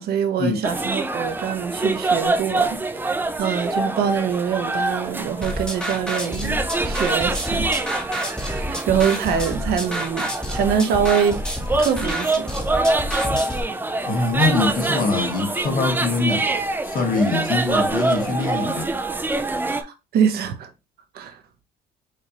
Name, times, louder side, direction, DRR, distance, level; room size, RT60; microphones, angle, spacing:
voice 1, 0.0-3.1 3.4-7.7 8.4-11.4 11.8-12.9 20.1-20.7 21.1-21.4, right 7 dB, 65° right, 0.9 m, -24 dB
sound 1, 0.6-19.8, right 2 dB, 10° right, 0.5 m, -25 dB
sound 2, 5.4-13.6, equal, 5° left, 0.9 m, -29 dB
voice 2, 14.0-16.5 16.8-18.9, left 3 dB, 55° left, 1.3 m, -23 dB
5.0 x 2.6 x 2.8 m
cardioid pair, 110°, 17 cm